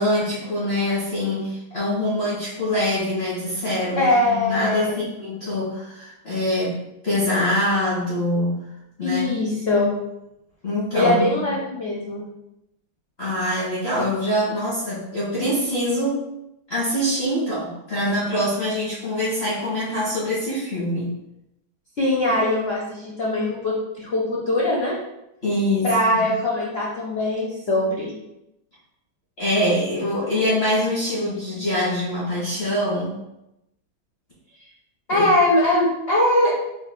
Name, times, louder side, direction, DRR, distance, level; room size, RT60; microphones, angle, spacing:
voice 1, 0.0-6.8 7.0-8.6 9.0-9.4 10.6-11.5 13.2-16.3 16.7-21.2 22.3-22.4 25.4-26.3 29.4-33.1 35.1-35.3, left 1 dB, 35° left, -10 dB, 1.4 m, -24 dB
voice 2, 4.0-5.1 9.0-10.0 10.9-12.3 22.0-25.0 25.8-28.1 35.1-36.5, left 1 dB, 85° left, -5 dB, 0.5 m, -21 dB
4.5 x 4.2 x 2.2 m, 0.88 s
omnidirectional pair, 2.2 m